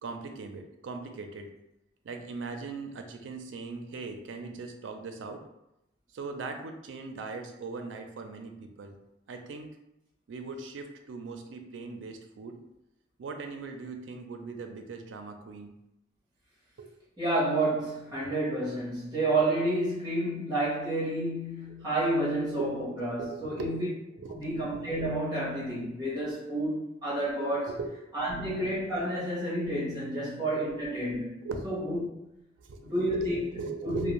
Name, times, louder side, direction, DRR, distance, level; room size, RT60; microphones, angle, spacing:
voice 1, 0.0-1.5 2.0-5.4 6.1-9.0 9.3-9.7 10.3-12.5 13.2-15.7 16.8-16.9 18.2-18.3 22.6-23.8 24.2-24.5 27.7-28.1 30.1-30.2 30.6-31.2 31.4-31.7 32.6-34.1, right 4 dB, 90° right, 5 dB, 0.4 m, -40 dB
voice 2, 17.2-23.9 24.3-27.7 28.1-31.4 31.6-32.0 32.9-33.5 33.8-34.1, right 1 dB, 20° right, -7 dB, 1.1 m, -30 dB
2.5 x 2.1 x 2.9 m, 0.87 s
head